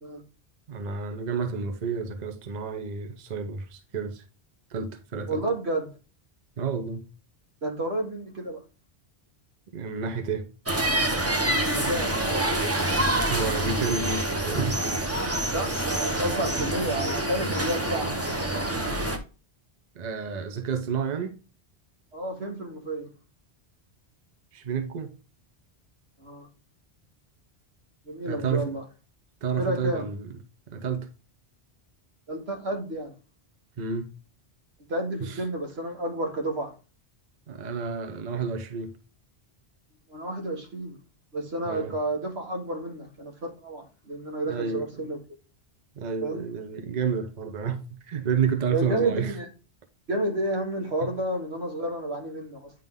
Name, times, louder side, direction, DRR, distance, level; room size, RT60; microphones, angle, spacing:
voice 1, 0.7-4.2 4.7-5.4 6.6-7.0 9.7-10.5 13.3-14.8 19.9-21.4 24.5-25.1 28.3-28.8 29.4-30.3 30.7-31.1 33.8-34.1 35.2-35.4 37.5-39.0 41.7-41.9 44.5-44.9 46.0-47.8 48.0-49.3, right 6 dB, 45° right, 0.8 m, -30 dB
voice 2, 5.3-5.9 7.6-8.6 11.4-12.1 15.5-18.1 22.1-23.1 26.2-26.5 28.1-28.8 29.6-30.1 32.3-33.1 34.9-36.7 40.1-41.0 41.3-45.2 46.2-46.5 48.7-49.5 50.1-52.7, right 1 dB, 75° right, 1.8 m, -30 dB
sound 1, 10.7-19.2, right 1 dB, 15° right, 0.8 m, -26 dB
9.1 x 3.7 x 3.6 m
omnidirectional pair, 1.1 m